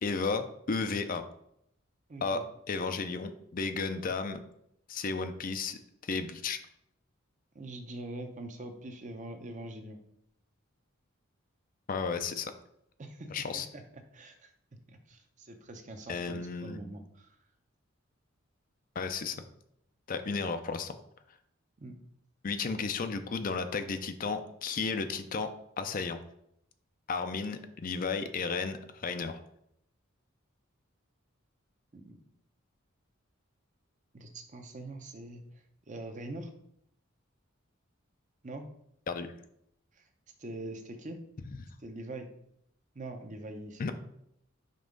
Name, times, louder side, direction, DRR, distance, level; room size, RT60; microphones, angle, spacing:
voice 1, 0.0-1.2 2.2-4.4 4.9-6.6 11.9-12.5 13.3-13.7 16.1-16.8 19.0-19.4 20.1-21.0 22.4-25.5 25.8-26.2 27.1-29.4 39.1-39.3 43.8-43.9, left 4 dB, 40° left, 9 dB, 0.5 m, -33 dB
voice 2, 2.1-2.5 7.5-10.0 13.0-14.5 14.9-17.4 21.8-22.0 31.9-32.2 34.1-36.5 38.4-38.7 39.9-40.1 40.4-41.2 41.8-42.3 42.9-43.9, right 2 dB, 35° right, 6 dB, 0.7 m, -43 dB
5.4 x 3.5 x 5.2 m, 0.74 s
head